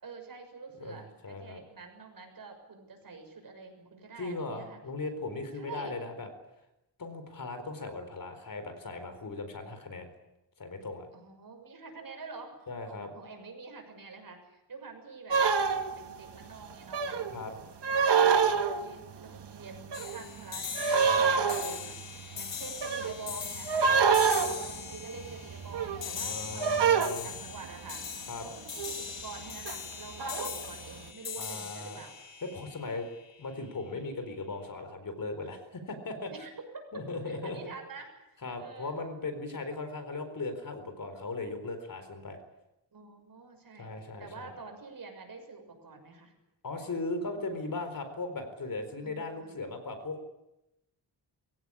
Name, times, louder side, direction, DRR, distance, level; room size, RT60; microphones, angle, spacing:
voice 1, 0.0-4.8 5.5-5.9 11.1-12.5 12.8-17.2 17.8-18.4 18.8-20.9 21.2-22.0 22.3-23.9 24.4-32.2 36.3-36.5 37.2-38.9 42.9-43.9 44.2-46.3 49.0-49.6, right 4 dB, 50° right, 5 dB, 6.6 m, -47 dB
voice 2, 0.8-1.6 4.2-6.3 7.0-10.1 10.6-11.1 12.7-13.1 17.3-17.5 21.0-21.2 23.9-24.0 26.2-27.3 28.3-28.5 31.4-32.0 32.4-33.1 33.4-36.3 36.9-37.6 38.4-42.4 43.8-44.5 46.6-50.2, left 3 dB, 50° left, 8 dB, 4.3 m, -38 dB
sound 1, 15.3-16.1 16.9-17.4 17.8-19.1 19.4-20.4 20.8-27.9 28.8-29.1 29.4-30.9, right 6 dB, 70° right, 2.0 m, -27 dB
sound 2, 19.9-33.4, left 6 dB, 80° left, 4.2 m, -41 dB
23.0 x 16.5 x 9.9 m, 0.93 s
wide cardioid pair, 110°, 43 cm